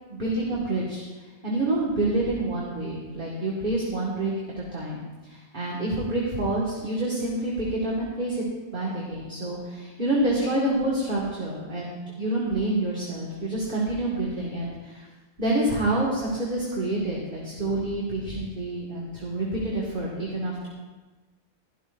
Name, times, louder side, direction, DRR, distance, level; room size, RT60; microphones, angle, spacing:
voice 1, 0.1-1.0 1.4-4.3 4.7-8.4 8.7-15.1 15.4-20.7, right 2 dB, 35° right, -6 dB, 2.2 m, -27 dB
16.0 x 13.5 x 2.7 m, 1.3 s
omnidirectional pair, 1.4 m